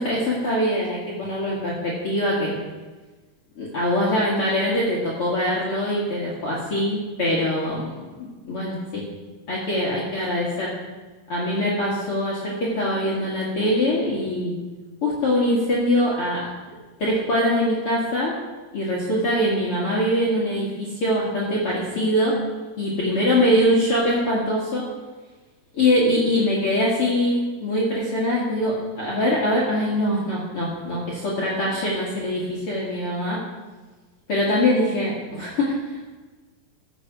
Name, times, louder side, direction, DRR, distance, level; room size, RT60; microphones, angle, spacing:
voice 1, 0.0-2.5 3.6-7.8 8.2-9.0 9.5-10.7 11.3-14.5 15.0-16.5 17.0-18.3 18.7-22.4 22.8-24.8 25.7-33.4 34.3-35.8, left 1 dB, 45° left, -6 dB, 2.7 m, -23 dB
15.5 x 6.2 x 6.3 m, 1.3 s
omnidirectional pair, 4.1 m